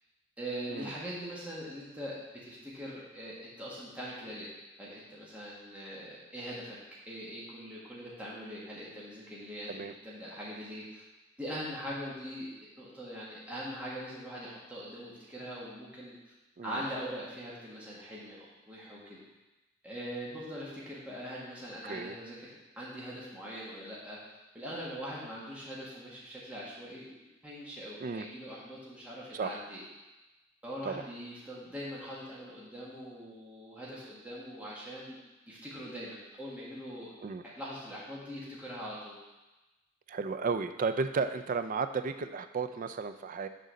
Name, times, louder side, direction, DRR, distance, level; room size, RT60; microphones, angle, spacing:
voice 1, 0.4-2.1 2.4-4.5 4.8-6.8 7.1-11.0 11.4-12.5 12.8-16.2 16.6-19.2 19.8-24.2 24.5-29.8 30.6-35.2 35.5-37.1 37.5-39.1, equal, 5° right, -7 dB, 1.5 m, -42 dB
voice 2, 21.8-22.2 28.0-28.3 29.3-29.6 30.8-31.0 37.2-37.4 40.1-43.5, right 4 dB, 40° right, 9 dB, 0.4 m, -34 dB
6.5 x 4.0 x 6.3 m, 1.1 s
head